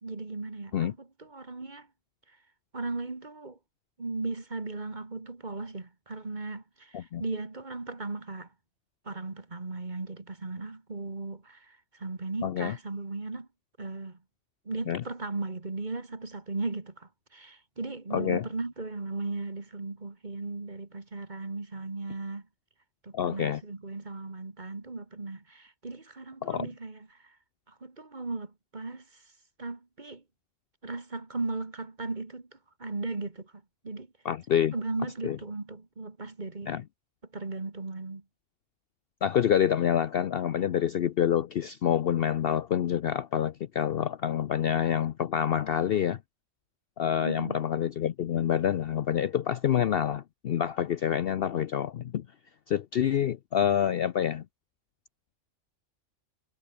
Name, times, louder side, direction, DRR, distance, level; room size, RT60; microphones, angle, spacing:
voice 1, 0.0-1.9 2.7-3.6 4.0-8.5 9.1-13.5 13.8-14.2 14.7-22.5 23.0-27.4 27.7-29.2 29.6-30.2 30.8-34.1 34.7-36.7 37.3-38.2 47.2-47.6, right 3 dB, 35° right, 2.2 m, -37 dB
voice 2, 12.4-12.7 14.9-15.0 18.1-18.4 23.1-23.6 26.4-26.7 34.2-34.7 35.2-35.4 36.7-36.8 39.2-46.2 47.0-52.3 52.7-54.4, left 9 dB, 60° left, 0.7 m, -27 dB
omnidirectional pair, 1.4 m